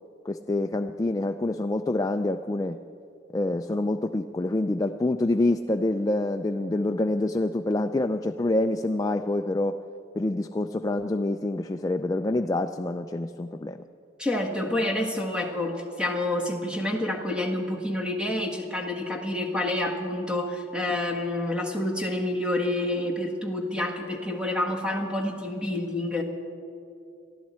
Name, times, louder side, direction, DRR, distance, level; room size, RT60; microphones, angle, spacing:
voice 1, 0.3-2.8 3.3-9.8 10.2-13.8, left 2 dB, 15° left, 6 dB, 0.3 m, -26 dB
voice 2, 14.2-26.2, left 1 dB, 5° right, 1 dB, 1.5 m, -28 dB
23.0 x 14.0 x 4.3 m, 2.6 s
head